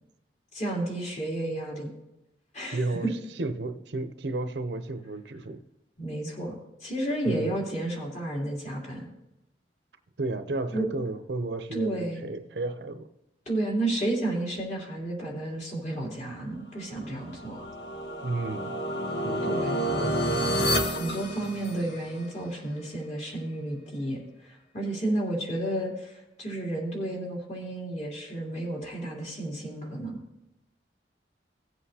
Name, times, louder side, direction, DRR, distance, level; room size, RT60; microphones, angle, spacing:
voice 1, 0.5-1.9 2.5-3.1 6.0-6.5 6.8-9.1 10.7-10.9 11.7-12.2 13.4-17.7 19.4-19.8 20.8-30.2, right 1 dB, 40° left, -3 dB, 3.2 m, -32 dB
voice 2, 2.7-3.1 3.4-5.6 7.3-7.6 10.2-13.1 18.2-18.8 19.2-19.6 20.0-20.1, right 2 dB, 70° right, 9 dB, 0.7 m, -32 dB
sound 1, 17.0-22.2, equal, 70° left, 1.1 m, -29 dB
17.5 x 7.9 x 2.8 m, 0.91 s
head